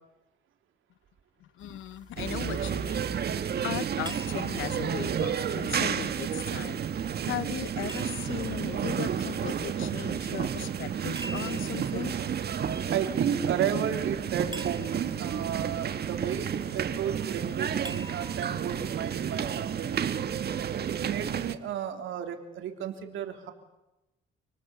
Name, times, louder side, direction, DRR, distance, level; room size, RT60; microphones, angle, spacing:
voice 1, 1.4-6.8 7.1-12.3, left 13 dB, 85° left, 0.8 m, -38 dB
sound 1, 1.6-19.7, right 2 dB, 20° right, 2.4 m, -49 dB
sound 2, 2.2-21.6, right 8 dB, 55° right, 1.5 m, -31 dB
voice 2, 12.9-20.2 20.9-23.5, right 9 dB, 80° right, 3.3 m, -33 dB
28.0 x 19.5 x 8.4 m
cardioid pair, 90°, 20 cm